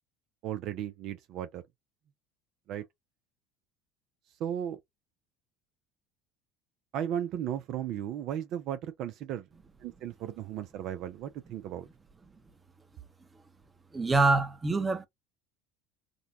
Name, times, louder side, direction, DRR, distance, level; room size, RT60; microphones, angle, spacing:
voice 1, 0.4-1.6 2.7-2.8 4.4-4.8 6.9-9.5 9.8-11.9, right 10 dB, 60° right, 0.5 m, -35 dB
voice 2, 13.9-15.1, right 3 dB, 20° right, 0.8 m, -25 dB
3.7 x 2.2 x 2.8 m
hypercardioid pair, 75°, 0 cm